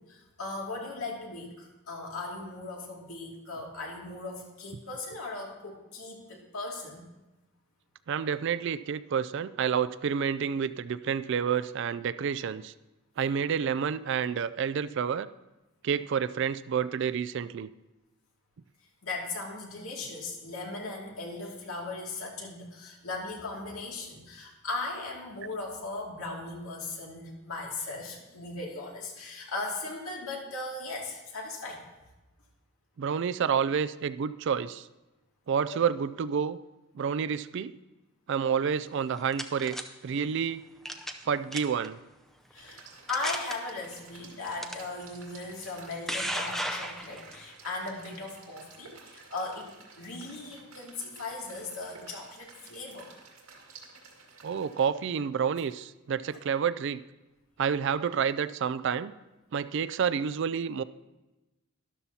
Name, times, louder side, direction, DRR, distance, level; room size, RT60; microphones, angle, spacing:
voice 1, 0.0-7.0 19.0-31.9 35.7-35.8 42.5-53.1, left 3 dB, 85° left, -1 dB, 2.4 m, -38 dB
voice 2, 8.1-12.7 13.2-15.3 15.8-17.7 33.0-34.9 35.5-36.6 36.9-37.7 38.3-39.8 40.0-40.6 41.2-42.0 54.4-57.0 57.6-59.1 59.5-60.8, right 7 dB, 60° right, 15 dB, 0.3 m, -29 dB
sound 1, 38.9-39.8 40.9-41.2 41.5-41.9 42.5-42.6 43.1-43.5 44.6-44.7 45.7-47.4, equal, ahead, 0.5 m, -34 dB
sound 2, 42.5-54.9, right 4 dB, 85° right, 2.1 m, -53 dB
12.5 x 12.0 x 2.8 m, 1.1 s
head